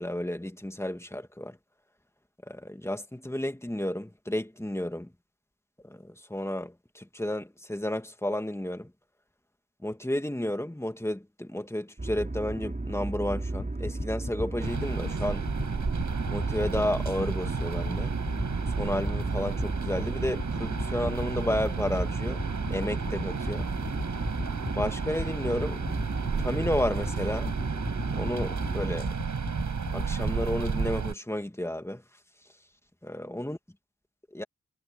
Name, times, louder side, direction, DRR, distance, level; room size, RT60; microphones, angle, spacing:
voice 1, 0.0-1.6 2.5-5.1 5.8-8.9 9.8-15.5 16.3-18.2 18.8-22.4 22.7-23.7 24.7-25.8 26.4-27.5 28.2-29.1 29.9-32.0 33.0-33.6 34.3-34.4, left 1 dB, 10° left, 2.4 m, -32 dB
sound 1, 12.0-29.0, right 2 dB, 25° right, 5.3 m, -35 dB
sound 2, 13.5-30.8, left 3 dB, 35° left, 2.4 m, -35 dB
sound 3, 14.6-31.1, right 5 dB, 75° right, 7.1 m, -32 dB
cardioid pair, 55°, 30 cm